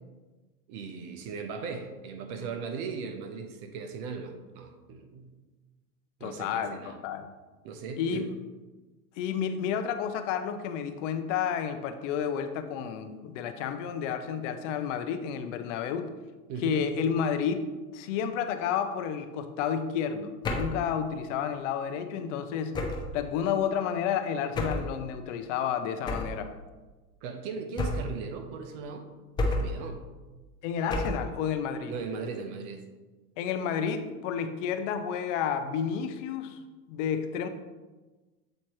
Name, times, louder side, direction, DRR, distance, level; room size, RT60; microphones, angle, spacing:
voice 1, 0.7-5.3 6.2-7.0 7.6-8.2 16.5-16.8 27.2-29.0 29.4-30.0 31.9-32.8, right 5 dB, 50° right, 6 dB, 1.0 m, -38 dB
voice 2, 6.2-7.3 8.0-8.4 9.2-16.1 16.6-17.7 17.9-22.8 23.1-26.5 30.6-31.9 33.4-36.6 36.9-37.5, left 7 dB, 55° left, 9 dB, 0.6 m, -31 dB
sound 1, 20.4-20.8 22.7-23.2 24.5-24.9 26.1-26.4 27.8-28.2 29.4-29.8 30.9-31.3, left 2 dB, 10° left, 0.3 m, -30 dB
7.6 x 4.3 x 3.0 m, 1.2 s
hypercardioid pair, 100°, 45 cm